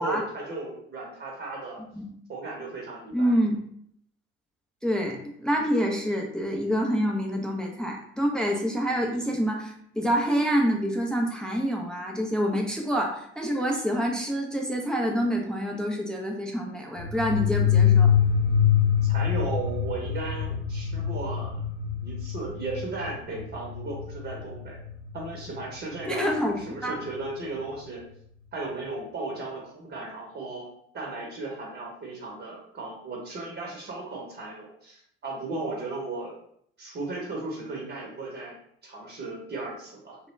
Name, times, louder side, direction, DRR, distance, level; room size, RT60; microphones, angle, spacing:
voice 1, 0.0-1.8 2.3-3.4 19.0-21.6 22.0-24.8 25.1-26.3 26.6-28.0 28.5-30.7 30.9-36.3 36.8-38.6 38.8-40.2, right 3 dB, 35° right, -2 dB, 0.8 m, -35 dB
voice 2, 3.1-3.6 4.8-18.1 26.1-27.0, equal, ahead, 1 dB, 0.4 m, -27 dB
sound 1, 17.0-25.4, left 8 dB, 90° left, 0.5 m, -25 dB
2.2 x 2.1 x 3.0 m, 0.69 s
hypercardioid pair, 60°, 33 cm